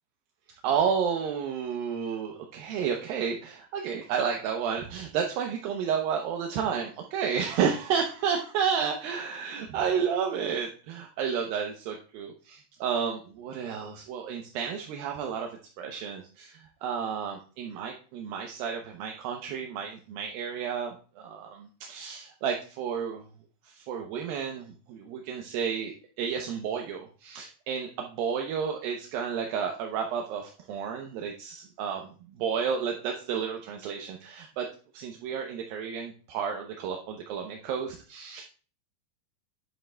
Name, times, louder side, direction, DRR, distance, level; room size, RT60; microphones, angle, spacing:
voice 1, 0.6-15.5 15.8-23.2 23.7-34.7 34.9-38.4, right 7 dB, 80° right, 2 dB, 2.1 m, -31 dB
10.5 x 7.7 x 2.2 m, 0.39 s
omnidirectional pair, 5.0 m